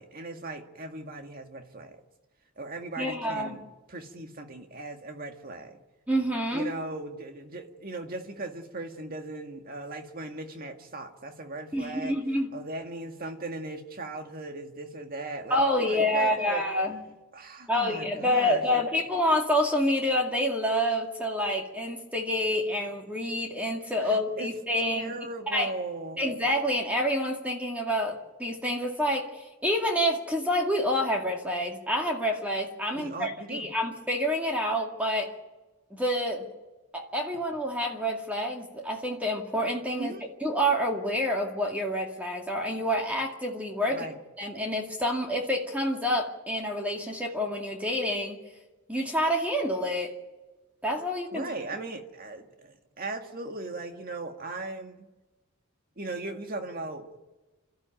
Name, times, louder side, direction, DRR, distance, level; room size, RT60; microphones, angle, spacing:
voice 1, 0.0-2.0 2.6-3.6 3.9-5.8 6.5-12.2 12.5-16.6 17.3-18.8 24.0-24.5 24.9-26.2 32.9-33.7 39.9-40.2 43.9-44.2 51.3-54.9 56.0-57.2, right 2 dB, 40° right, 5 dB, 1.9 m, -38 dB
voice 2, 3.0-3.6 6.1-6.7 11.7-12.5 15.5-17.0 17.7-25.2 25.5-25.7 26.2-35.3 35.9-36.4 36.9-40.2 40.4-44.1 44.4-48.4 48.9-50.1 50.8-51.4, equal, 5° right, 1 dB, 2.2 m, -28 dB
29.0 x 13.5 x 9.1 m, 1.2 s
head